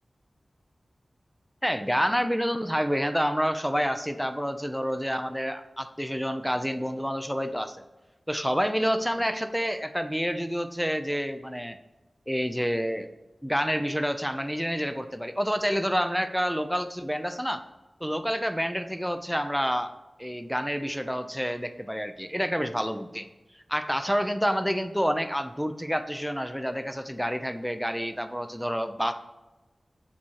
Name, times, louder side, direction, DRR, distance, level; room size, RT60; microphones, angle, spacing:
voice 1, 1.6-7.8 8.3-11.8 12.3-13.1 13.4-17.6 18.0-19.9 20.2-23.3 23.7-29.1, equal, ahead, 9 dB, 0.5 m, -28 dB
7.1 x 4.3 x 4.6 m, 1.1 s
wide cardioid pair, 85°, 0 cm